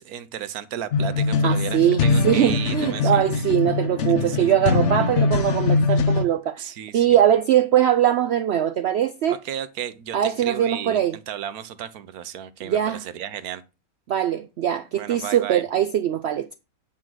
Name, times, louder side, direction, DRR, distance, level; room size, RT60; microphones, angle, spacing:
voice 1, 0.0-3.5 4.3-4.4 6.6-7.2 9.3-13.6 14.9-15.6, right 10 dB, 80° right, 1.3 m, -34 dB
sound 1, 0.9-6.2, left 4 dB, 55° left, 1.0 m, -22 dB
voice 2, 1.4-9.4 10.1-11.2 12.6-13.0 14.1-16.5, right 10 dB, 65° right, 0.6 m, -21 dB
8.8 x 3.8 x 6.1 m
omnidirectional pair, 1.5 m